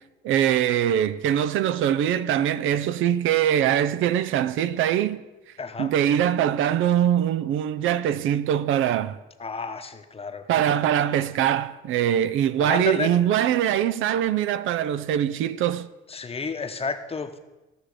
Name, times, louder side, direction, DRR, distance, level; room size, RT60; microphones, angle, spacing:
voice 1, 0.2-5.2 5.8-9.2 10.5-15.9, right 10 dB, 85° right, 0.5 m, -22 dB
voice 2, 5.6-5.9 9.4-10.5 12.6-13.2 16.1-17.4, left 4 dB, 30° left, 0.9 m, -31 dB
15.5 x 6.1 x 4.9 m
cardioid pair, 90°, 20 cm